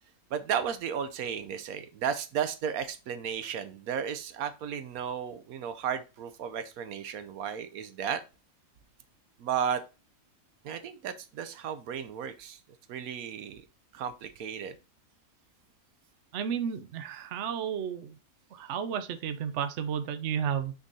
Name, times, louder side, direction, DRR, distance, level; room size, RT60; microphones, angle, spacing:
voice 1, 0.3-8.2 9.4-9.8 10.6-12.6 12.9-13.6 13.9-14.8, right 8 dB, 80° right, 11 dB, 1.2 m, -34 dB
voice 2, 16.3-18.1 18.5-20.7, right 8 dB, 60° right, 10 dB, 0.9 m, -32 dB
6.1 x 3.8 x 4.0 m, 0.29 s
omnidirectional pair, 1.5 m